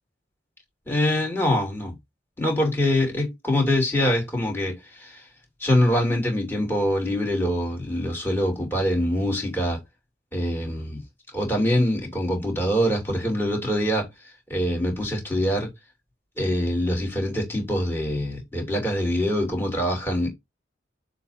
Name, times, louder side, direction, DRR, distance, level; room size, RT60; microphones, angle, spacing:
voice 1, 0.9-2.0 2.4-5.3 5.6-9.8 10.3-11.0 11.3-15.7 16.4-20.3, left 1 dB, 10° left, 2.8 m, -24 dB
6.9 x 2.7 x 5.6 m
head